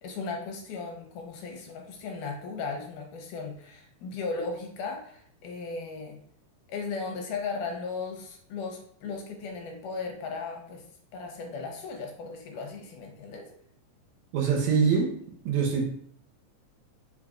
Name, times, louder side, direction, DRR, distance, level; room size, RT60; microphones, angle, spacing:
voice 1, 0.0-6.2 6.7-10.8 11.1-13.5, left 4 dB, 80° left, 2 dB, 2.4 m, -36 dB
voice 2, 14.3-15.1 15.5-15.8, right 5 dB, 75° right, -1 dB, 2.0 m, -23 dB
5.5 x 4.0 x 2.4 m, 0.62 s
omnidirectional pair, 3.7 m